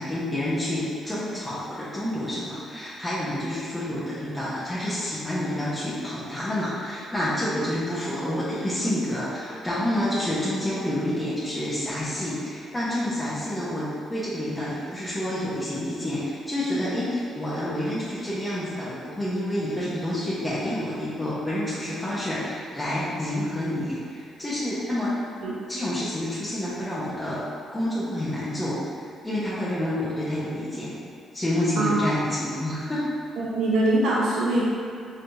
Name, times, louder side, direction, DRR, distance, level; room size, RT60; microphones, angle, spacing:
voice 1, 0.0-25.1 25.7-27.4 27.7-28.8 29.2-30.9 31.3-33.1, left 1 dB, 15° left, -11 dB, 0.9 m, -28 dB
voice 2, 33.4-34.6, right 2 dB, 80° right, -7 dB, 0.8 m, -23 dB
4.3 x 3.2 x 2.7 m, 2.4 s
cardioid pair, 90°, 0 cm